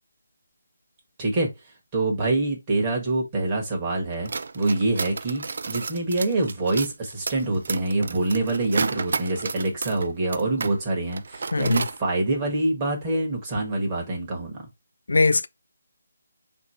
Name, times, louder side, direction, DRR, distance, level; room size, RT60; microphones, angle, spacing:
voice 1, 1.9-14.6, right 2 dB, 15° right, 1.1 m, -25 dB
sound 1, 4.1-10.8 11.0-12.0, right 4 dB, 55° right, 0.3 m, -32 dB
voice 2, 11.5-11.8 15.1-15.5, left 3 dB, 85° left, 0.4 m, -20 dB
4.1 x 2.7 x 4.3 m
hypercardioid pair, 170°, 0 cm